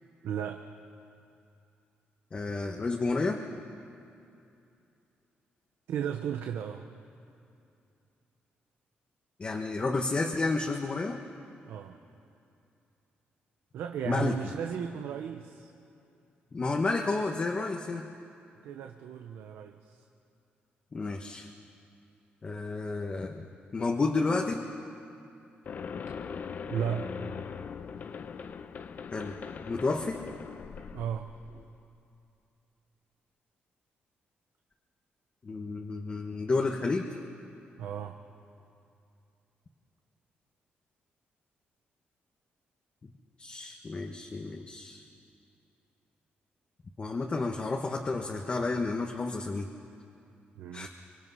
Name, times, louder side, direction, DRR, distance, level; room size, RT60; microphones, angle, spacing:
voice 1, 0.2-0.6 5.9-6.9 11.7-12.0 13.7-15.7 18.6-20.0 26.7-27.1 30.9-31.3 37.8-38.2 50.6-50.9, right 9 dB, 90° right, 5 dB, 0.9 m, -35 dB
voice 2, 2.3-3.4 9.4-11.2 14.0-14.3 16.5-18.1 20.9-21.5 22.4-23.4 23.7-24.6 29.1-29.4 29.7-30.2 35.4-37.1 43.4-45.1 47.0-49.7 50.7-50.9, left 3 dB, 30° left, 1 dB, 1.3 m, -31 dB
sound 1, 25.7-31.7, left 6 dB, 50° left, 0.8 m, -40 dB
25.0 x 25.0 x 5.6 m, 2.6 s
cardioid pair, 110°, 4 cm